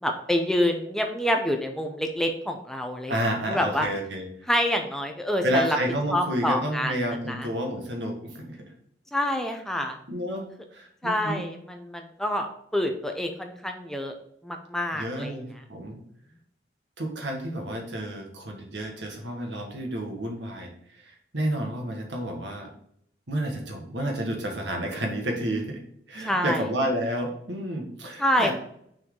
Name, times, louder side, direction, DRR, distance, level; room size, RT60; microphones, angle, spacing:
voice 1, 0.0-3.1 3.5-3.9 4.5-5.8 6.1-6.9 7.3-7.5 9.1-10.0 11.0-14.1 14.4-15.3 26.3-26.7 28.2-28.5, equal, 5° left, 4 dB, 0.6 m, -27 dB
voice 2, 3.1-4.3 5.4-8.7 10.1-10.5 10.7-11.4 14.9-16.0 17.0-20.7 21.0-22.7 23.3-25.8 26.1-28.5, right 1 dB, 85° right, 2 dB, 1.6 m, -30 dB
6.4 x 4.6 x 3.8 m, 0.70 s
head